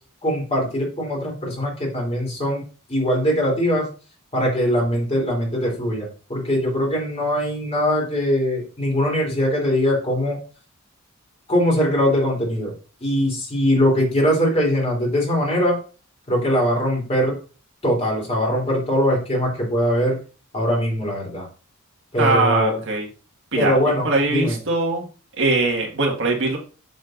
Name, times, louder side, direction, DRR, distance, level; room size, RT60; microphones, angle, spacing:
voice 1, 0.2-2.6 2.9-3.9 4.3-10.4 11.5-12.7 13.0-15.8 16.3-17.4 17.8-20.2 20.5-21.5 22.1-22.8 23.5-24.6, equal, 30° left, -1 dB, 3.3 m, -21 dB
voice 2, 22.2-23.1 23.5-23.7 24.0-25.0 25.4-26.6, right 3 dB, 60° right, 0 dB, 1.8 m, -21 dB
7.5 x 7.1 x 2.6 m, 0.35 s
head